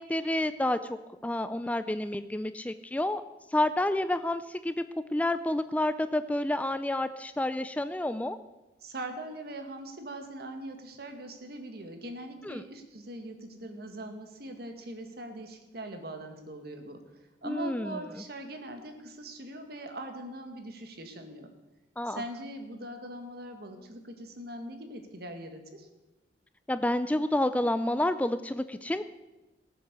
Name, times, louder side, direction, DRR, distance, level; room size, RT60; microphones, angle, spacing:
voice 1, 0.0-3.2 3.5-4.8 5.1-8.4 12.4-12.6 17.4-18.0 22.0-22.2 26.7-29.0, left 1 dB, 10° left, 12 dB, 0.4 m, -29 dB
voice 2, 8.8-17.0 17.4-21.5 22.0-25.9, right 1 dB, 60° right, 6 dB, 1.9 m, -41 dB
18.5 x 7.6 x 6.8 m, 1.1 s
head